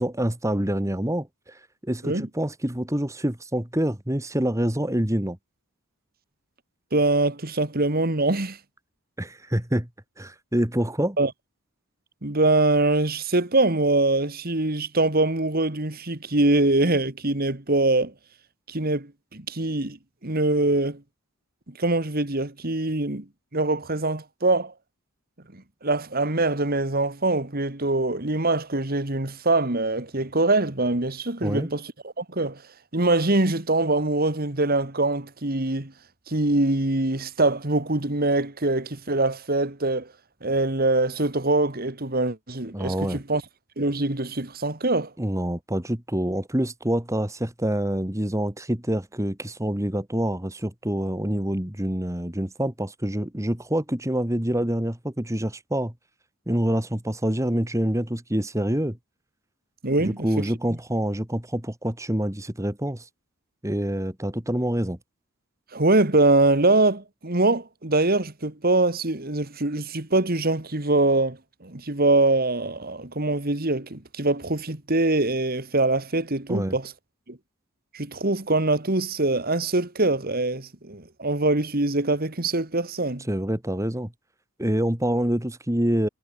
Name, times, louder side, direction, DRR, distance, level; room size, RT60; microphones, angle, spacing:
voice 1, 0.0-5.4 9.2-9.9 10.2-11.2 31.4-31.7 42.7-43.2 45.2-55.9 56.5-59.0 60.0-63.0 63.6-65.0 76.5-76.7 83.3-84.1 84.6-86.1, right 1 dB, 15° right, 1.9 m, -26 dB
voice 2, 6.9-8.6 11.2-11.3 12.2-18.1 18.7-20.0 20.2-21.0 21.7-23.3 23.5-24.7 25.5-32.6 32.9-35.9 36.3-40.1 40.4-43.4 43.8-45.1 59.8-60.5 65.7-76.9 77.3-77.4 77.9-83.3, right 2 dB, 45° right, 2.2 m, -23 dB
head